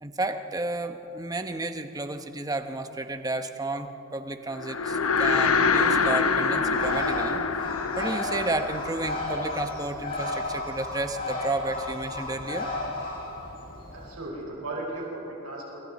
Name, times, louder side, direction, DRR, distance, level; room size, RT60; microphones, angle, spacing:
voice 1, 0.0-7.4 8.0-12.7, right 2 dB, 15° right, 7 dB, 0.9 m, -32 dB
sound 1, 4.6-10.0, left 5 dB, 80° left, 1.0 m, -25 dB
Bird, 6.7-14.1, left 2 dB, 45° left, 6.1 m, -33 dB
voice 2, 13.9-15.9, right 2 dB, 85° right, -2 dB, 5.0 m, -36 dB
27.5 x 24.0 x 4.2 m, 3.0 s
head